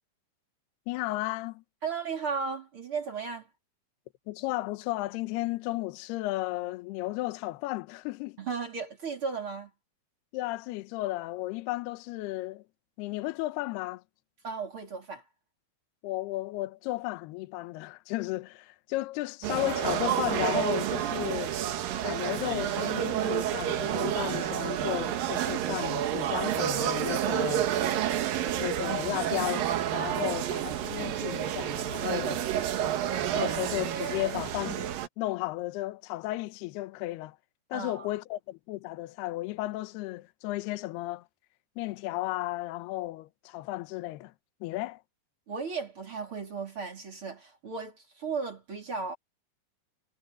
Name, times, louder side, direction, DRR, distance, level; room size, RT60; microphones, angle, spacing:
voice 1, 0.9-1.6 4.3-8.4 10.3-12.6 13.0-14.0 16.0-21.6 22.0-27.7 28.6-32.4 33.3-34.9 35.2-37.4 37.7-41.2 41.8-44.3 44.6-45.0, left 18 dB, 75° left, 2.5 m, -34 dB
voice 2, 1.8-3.5 8.4-9.7 14.4-15.2 30.2-30.4 37.7-38.1 45.5-49.2, right 5 dB, 30° right, 3.1 m, -35 dB
sound 1, 19.4-35.1, right 11 dB, 65° right, 2.3 m, -30 dB
omnidirectional pair, 5.7 m